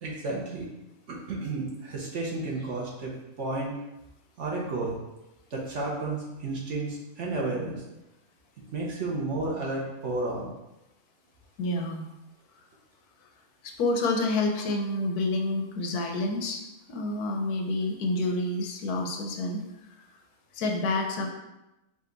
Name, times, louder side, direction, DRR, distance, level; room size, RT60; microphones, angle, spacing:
voice 1, 0.0-0.7 1.1-3.7 4.4-5.0 5.5-7.8 8.7-10.5, right 2 dB, 55° right, -3 dB, 1.1 m, -32 dB
voice 2, 11.6-12.1 13.6-19.6 20.5-21.3, left 2 dB, 80° left, 3 dB, 1.2 m, -28 dB
5.1 x 2.4 x 3.9 m, 0.94 s
omnidirectional pair, 1.6 m